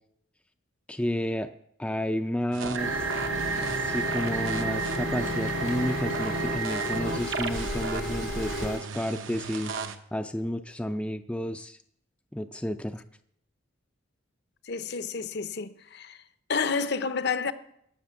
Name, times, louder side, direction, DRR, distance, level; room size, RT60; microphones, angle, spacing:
voice 1, 0.9-1.5 1.8-2.9 3.8-9.7 10.1-11.8 12.3-13.0, equal, 5° left, 0.4 m, -31 dB
sound 1, 2.5-10.0, right 4 dB, 75° right, 1.0 m, -32 dB
sound 2, 2.8-8.8, left 1 dB, 90° left, 3.1 m, -35 dB
voice 2, 14.6-16.2 16.5-17.5, left 5 dB, 55° left, 0.7 m, -30 dB
18.0 x 6.6 x 7.0 m
head